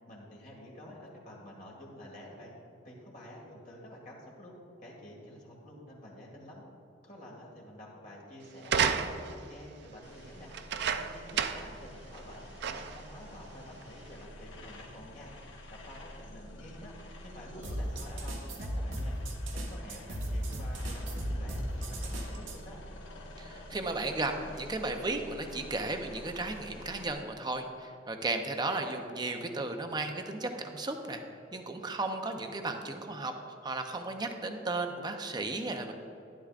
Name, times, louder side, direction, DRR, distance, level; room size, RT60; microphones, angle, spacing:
voice 1, 0.1-2.5 2.8-4.5 4.8-6.6 7.0-10.5 10.8-15.3 15.7-16.9 17.2-19.2 19.5-22.8, left 1 dB, 45° left, -3 dB, 1.9 m, -49 dB
sound 1, 8.6-9.4 10.5-11.8 12.1-12.2 12.6-13.1 13.8-13.9, right 7 dB, 60° right, 0.4 m, -31 dB
sound 2, 10.0-27.1, left 1 dB, 85° left, 1.3 m, -48 dB
sound 3, 17.6-22.6, equal, 90° right, 1.4 m, -35 dB
voice 2, 23.4-31.2 31.5-35.9, right 2 dB, 20° right, 5 dB, 0.7 m, -35 dB
12.0 x 11.5 x 2.5 m, 2.7 s
head